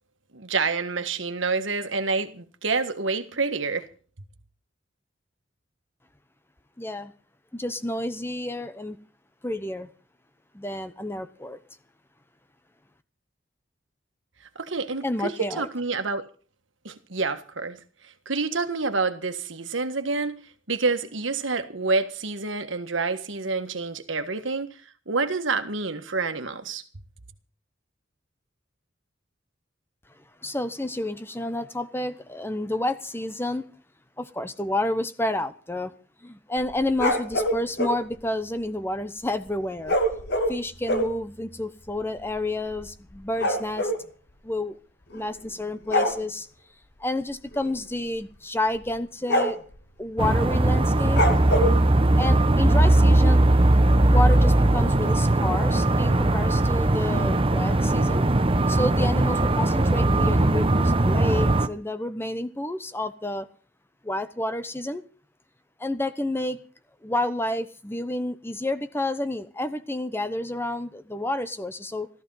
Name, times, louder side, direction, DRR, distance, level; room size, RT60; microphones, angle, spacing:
voice 1, 0.3-3.8 14.5-16.2 16.8-17.8 18.2-20.4 20.7-24.7 25.1-26.8, right 4 dB, 75° right, 1.6 m, -28 dB
voice 2, 6.8-7.1 7.5-9.0 9.4-9.9 10.5-11.6 15.0-15.7 30.4-33.7 34.2-35.9 36.2-40.0 40.5-43.9 44.4-44.8 45.1-46.5 47.0-49.6 50.0-51.2 52.2-53.4 54.1-58.2 58.7-63.5 64.0-65.0 65.8-66.6 67.0-72.1, left 1 dB, 10° left, 0.9 m, -30 dB
sound 1, 36.6-38.0 39.9-41.2 41.9-42.0 42.2-42.4 42.7-44.0 45.1-45.5 45.8-46.2 47.5-47.8 48.1-48.2 48.7-48.9 49.3-49.8 51.1-51.8, equal, 55° left, 2.5 m, -25 dB
sound 2, 50.2-61.7, right 1 dB, 30° right, 0.9 m, -20 dB
14.0 x 14.0 x 5.6 m
head